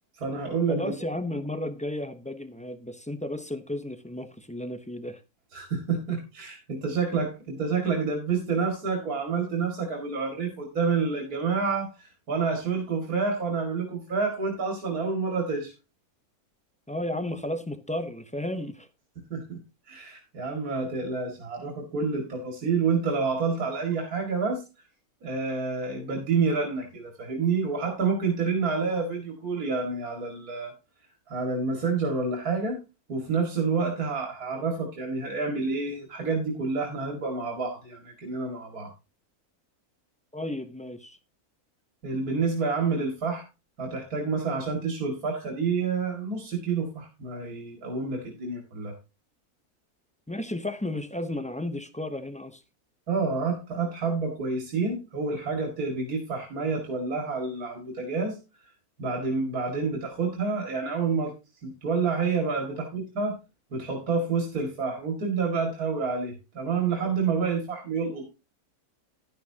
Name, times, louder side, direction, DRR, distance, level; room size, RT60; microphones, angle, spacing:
voice 1, 0.2-0.9 5.5-15.7 19.3-19.6 19.9-24.6 25.2-30.7 31.3-32.8 33.1-38.9 42.0-43.4 43.8-48.9 53.1-58.4 59.0-61.3 61.6-63.4 63.7-68.3, right 4 dB, 75° right, 2.7 m, -28 dB
voice 2, 0.7-5.2 16.9-18.9 40.3-41.2 50.3-52.6, left 1 dB, 10° left, 0.5 m, -33 dB
11.5 x 11.5 x 2.8 m
omnidirectional pair, 1.6 m